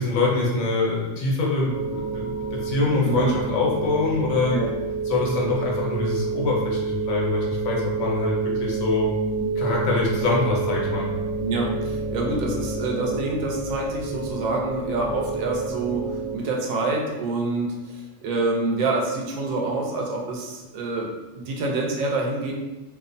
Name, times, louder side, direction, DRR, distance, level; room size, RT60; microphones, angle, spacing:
voice 1, 0.0-4.6 5.1-9.1 9.6-11.1, left 3 dB, 90° left, -3 dB, 1.1 m, -24 dB
sound 1, 1.7-16.4, right 4 dB, 60° right, 0.9 m, -29 dB
voice 2, 11.4-22.5, right 3 dB, 85° right, -1 dB, 1.0 m, -27 dB
2.7 x 2.1 x 2.5 m, 1.1 s
omnidirectional pair, 1.4 m